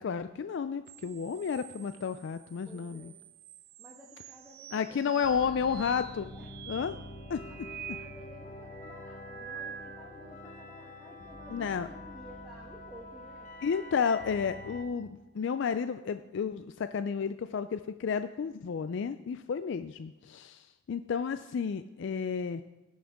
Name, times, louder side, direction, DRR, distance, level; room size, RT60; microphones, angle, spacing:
voice 1, 0.0-3.1 4.7-6.3 6.7-6.9 7.3-7.4 11.5-11.9 13.6-22.6, left 6 dB, 60° left, 11 dB, 0.3 m, -32 dB
sound 1, 0.9-10.4 10.9-12.2 14.0-15.2, right 10 dB, 45° right, 0.3 m, -49 dB
voice 2, 2.6-3.1 3.8-5.8 6.3-6.6 7.5-13.5, equal, 5° right, -4 dB, 1.2 m, -53 dB
sound 2, 5.2-14.8, left 1 dB, 40° left, 1.1 m, -46 dB
17.0 x 6.3 x 3.5 m, 1.1 s
head